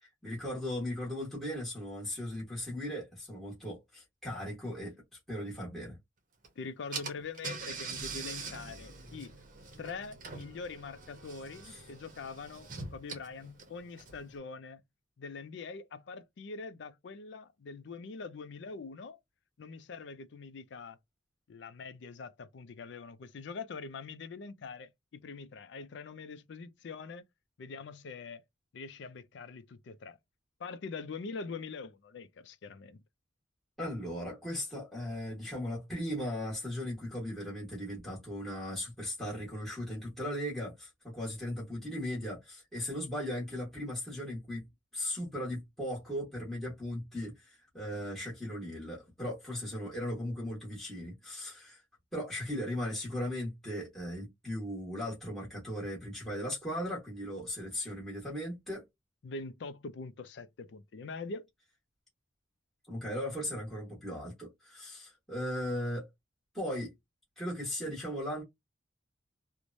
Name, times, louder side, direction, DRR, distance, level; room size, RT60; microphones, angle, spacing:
voice 1, 0.0-6.0 11.6-11.9 33.8-44.6 44.9-51.8 52.1-58.8 62.9-66.1 66.5-66.9 67.4-68.4, left 1 dB, ahead, 1.2 m, -37 dB
Car / Engine, 6.4-6.5 6.9-14.4, right 4 dB, 45° right, 0.7 m, -44 dB
voice 2, 6.6-9.3 9.8-14.8 15.2-19.2 19.6-21.0 21.5-27.3 27.6-28.4 28.7-30.2 30.6-33.0 59.2-61.4, left 4 dB, 65° left, 0.4 m, -44 dB
3.0 x 2.1 x 2.5 m
head